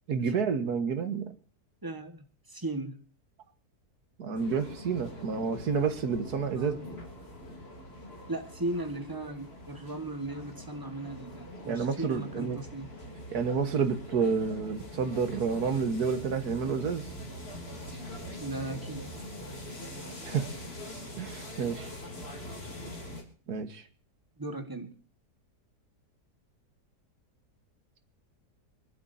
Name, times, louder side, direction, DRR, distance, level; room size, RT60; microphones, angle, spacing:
voice 1, 0.1-1.3 4.2-6.8 11.7-12.6 13.3-17.1 20.2-20.5 21.2-21.9 23.5-23.8, right 6 dB, 70° right, 9 dB, 1.8 m, -29 dB
voice 2, 1.8-3.0 6.6-6.9 8.3-12.9 18.4-19.1 24.4-24.9, right 2 dB, 15° right, 7 dB, 1.4 m, -37 dB
sound 1, 4.4-23.2, left 1 dB, 35° left, 3.3 m, -43 dB
sound 2, 14.4-19.5, right 6 dB, 50° right, 1.6 m, -50 dB
26.0 x 11.5 x 2.7 m, 0.42 s
omnidirectional pair, 1.8 m